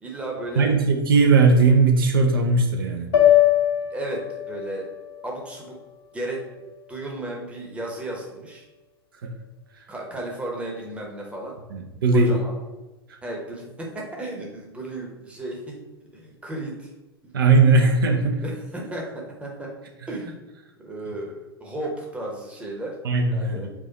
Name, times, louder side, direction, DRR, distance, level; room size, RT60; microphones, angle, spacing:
voice 1, 0.0-0.7 3.9-4.9 5.2-5.8 6.1-6.4 6.9-8.7 9.9-11.6 12.1-12.5 13.2-15.8 16.1-16.9 17.2-17.3 17.8-17.9 18.4-19.7 20.1-20.4 20.8-23.0 23.3-23.7, right 1 dB, 10° right, -1 dB, 0.9 m, -34 dB
voice 2, 0.6-3.1 9.2-9.3 9.8-9.9 11.7-12.4 13.1-13.2 17.3-18.4 23.0-23.7, right 3 dB, 60° right, 3 dB, 0.6 m, -18 dB
sound 1, 3.1-7.4, left 12 dB, 55° left, 0.8 m, -23 dB
4.7 x 2.4 x 4.1 m, 1.1 s
figure-of-eight pair, 95°, 13 cm